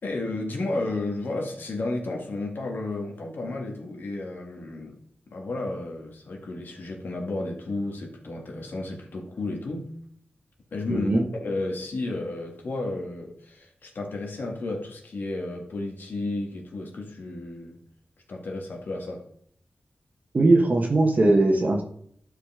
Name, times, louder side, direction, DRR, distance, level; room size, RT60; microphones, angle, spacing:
voice 1, 0.0-5.0 5.3-9.9 10.7-17.8 18.3-19.3, left 2 dB, 75° left, 0 dB, 2.0 m, -32 dB
voice 2, 10.9-11.2 20.3-21.8, right 2 dB, 50° right, 1 dB, 1.2 m, -20 dB
11.5 x 5.0 x 3.7 m, 0.67 s
wide cardioid pair, 80°, 3 cm